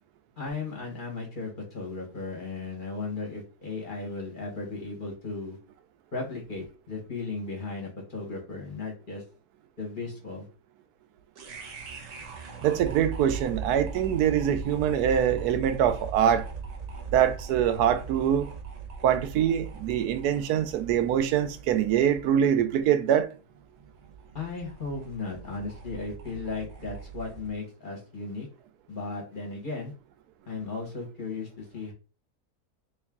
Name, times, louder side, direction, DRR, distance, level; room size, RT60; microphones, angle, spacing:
voice 1, 0.4-5.6 6.1-9.2 9.8-10.5 24.3-28.5 28.9-29.9 30.5-31.9, left 3 dB, 35° left, 1.1 m, -36 dB
sound 1, 11.4-27.6, right 6 dB, 60° right, 1.0 m, -40 dB
voice 2, 12.6-16.5 17.1-18.5 19.0-23.3, right 9 dB, 85° right, 1.1 m, -24 dB
3.2 x 3.1 x 3.5 m
omnidirectional pair, 1.6 m